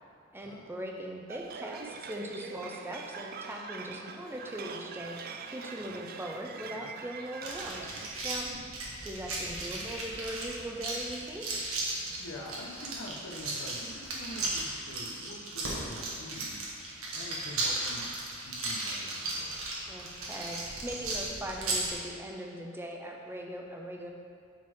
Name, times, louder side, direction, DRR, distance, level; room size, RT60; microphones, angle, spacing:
voice 1, 0.3-8.5 9.0-11.5 19.9-24.1, right 1 dB, 10° right, 0 dB, 0.6 m, -40 dB
sound 1, 1.3-8.1, right 5 dB, 45° right, 0.4 m, -43 dB
sound 2, 7.4-21.9, right 2 dB, 90° right, 1.4 m, -36 dB
voice 2, 12.0-19.7, left 1 dB, 80° left, 0 dB, 1.0 m, -46 dB
sound 3, 15.6-16.8 20.6-20.7, right 1 dB, 70° right, 1.4 m, -41 dB
8.5 x 4.0 x 4.6 m, 2.5 s
head